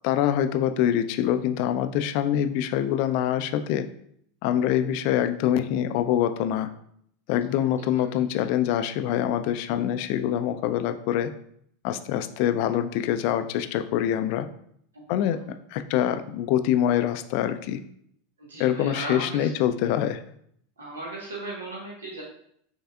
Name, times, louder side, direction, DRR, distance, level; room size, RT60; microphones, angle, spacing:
voice 1, 0.0-3.9 4.4-6.7 7.3-11.3 11.8-14.5 15.1-15.4 15.7-17.8 18.6-20.2, left 10 dB, 55° left, 10 dB, 0.3 m, -25 dB
voice 2, 7.5-8.0 14.9-15.4 18.4-19.5 20.8-22.2, right 2 dB, 85° right, -4 dB, 1.1 m, -38 dB
5.4 x 3.4 x 2.3 m, 0.68 s
hypercardioid pair, 85°, 0 cm